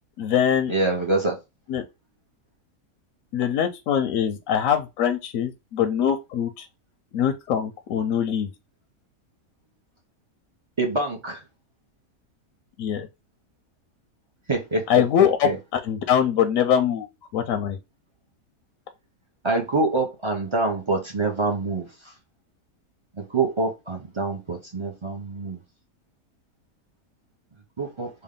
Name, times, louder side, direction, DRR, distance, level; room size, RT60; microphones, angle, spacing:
voice 1, 0.2-0.7 1.7-1.8 3.3-6.7 7.1-8.5 12.8-13.1 14.9-17.8, left 9 dB, 70° left, 0.8 m, -23 dB
voice 2, 0.7-1.4 10.8-11.4 14.5-14.9 15.4-15.6 19.4-21.9 23.2-25.6 27.8-28.1, right 3 dB, 45° right, 0.3 m, -25 dB
3.6 x 2.2 x 3.6 m
omnidirectional pair, 1.7 m